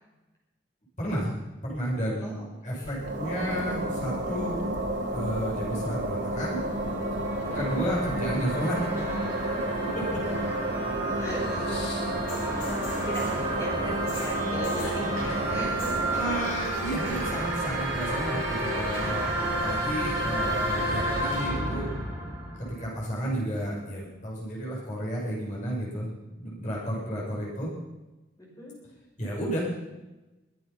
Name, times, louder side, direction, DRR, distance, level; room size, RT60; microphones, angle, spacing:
voice 1, 1.0-1.3 1.6-2.4 2.6-4.6 5.1-6.6 7.6-8.9 10.1-10.2 16.1-19.3 19.6-21.9 22.6-26.1 26.4-27.7 29.2-29.6, equal, 40° left, -5 dB, 7.0 m, -32 dB
voice 2, 2.2-3.0 7.3-7.6 11.2-11.7 12.4-12.6 13.0-16.2 26.9-27.4 28.4-28.7, equal, 20° left, -3 dB, 5.5 m, -40 dB
sound 1, 2.8-21.3, right 1 dB, 70° right, 2.7 m, -31 dB
sound 2, 6.3-23.3, right 1 dB, 15° right, 6.9 m, -32 dB
sound 3, 11.5-13.4 14.1-15.0 15.6-16.1 16.3-16.8 17.2-17.9 18.7-18.8, left 4 dB, 90° left, 5.8 m, -43 dB
22.5 x 9.6 x 6.0 m, 1.1 s
head